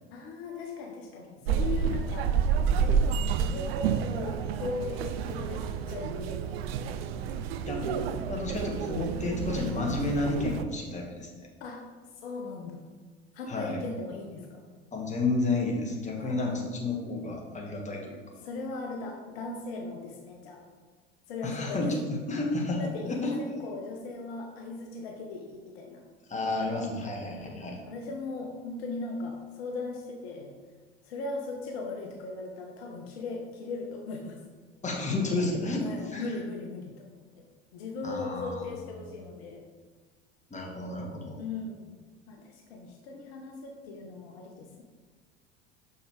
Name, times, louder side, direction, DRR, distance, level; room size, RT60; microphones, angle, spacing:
voice 1, 0.1-2.3 2.7-6.6 7.8-8.2 11.6-11.8 12.2-12.9 13.3-14.7 16.1-16.6 18.4-20.6 21.3-22.0 22.8-26.0 27.3-30.5 31.0-34.4 35.8-37.4 37.7-39.7 41.4-41.9 42.3-44.8, left 3 dB, 65° left, 2 dB, 0.9 m, -38 dB
sound 1, 1.5-10.6, right 7 dB, 65° right, 0.5 m, -29 dB
voice 2, 7.6-8.0 8.3-11.3 13.5-13.8 14.9-18.2 21.4-22.8 23.1-23.4 26.3-27.8 34.8-36.3 38.0-38.6 40.5-41.4, left 2 dB, 20° left, -1 dB, 1.6 m, -31 dB
6.5 x 5.5 x 3.2 m, 1.4 s
figure-of-eight pair, 70°, 32 cm